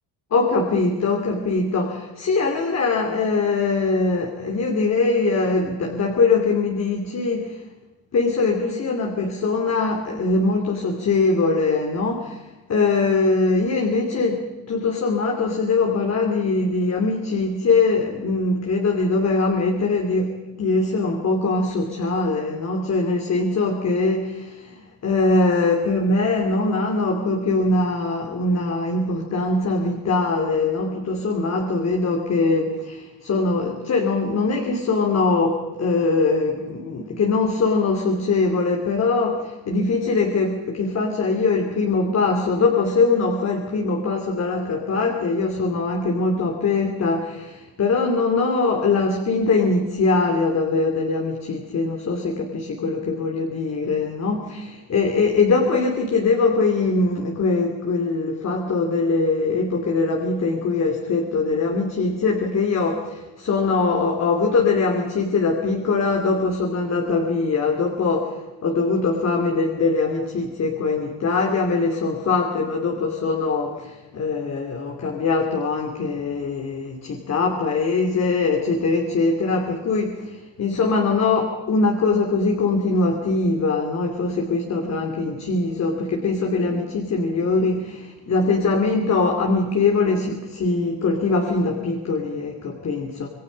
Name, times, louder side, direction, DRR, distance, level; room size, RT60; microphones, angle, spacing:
voice 1, 0.3-7.6 8.1-12.4 12.7-68.4 68.6-93.3, left 3 dB, 40° left, 1 dB, 2.9 m, -22 dB
27.0 x 24.0 x 5.3 m, 1.2 s
cardioid pair, 180°, 41 cm